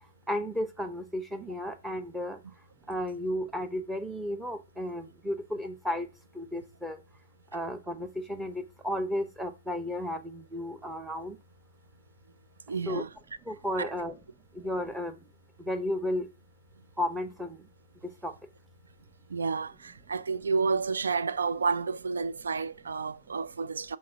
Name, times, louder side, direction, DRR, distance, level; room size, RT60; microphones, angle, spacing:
voice 1, 0.3-2.4 2.9-6.1 6.3-7.0 7.5-11.4 12.9-13.0 13.5-14.2 14.6-15.1 15.7-16.3 17.0-17.6 18.0-18.3, left 1 dB, 5° right, 0.8 m, -33 dB
voice 2, 12.7-13.1 13.8-13.9 19.3-24.0, right 4 dB, 70° right, 0.4 m, -30 dB
6.5 x 3.7 x 5.8 m
figure-of-eight pair, 120°, 0 cm